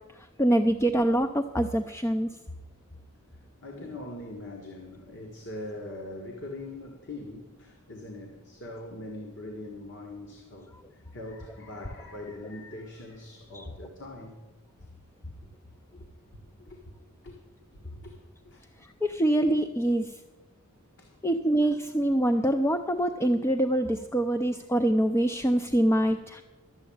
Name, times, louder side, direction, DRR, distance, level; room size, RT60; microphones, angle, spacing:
voice 1, 0.1-2.3 13.5-13.6 19.0-20.2 21.2-26.4, right 1 dB, 10° left, 6 dB, 0.4 m, -25 dB
voice 2, 3.6-14.4 15.9-17.0 17.2-17.4 17.7-18.7 21.0-21.2, left 1 dB, 55° left, 2 dB, 1.6 m, -42 dB
12.5 x 7.2 x 8.6 m, 1.2 s
head